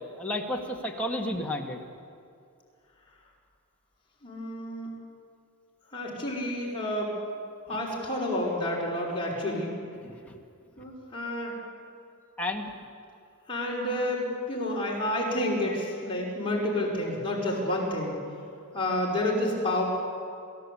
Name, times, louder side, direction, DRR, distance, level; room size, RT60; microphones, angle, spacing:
voice 1, 0.0-1.8 10.0-10.3 12.4-12.7, left 1 dB, 5° left, 0 dB, 2.0 m, -32 dB
voice 2, 4.2-4.9 5.9-7.1 7.7-9.7 10.8-11.5 13.5-18.2 18.7-19.8, left 1 dB, 25° left, -4 dB, 5.2 m, -29 dB
29.5 x 15.0 x 8.5 m, 2.4 s
head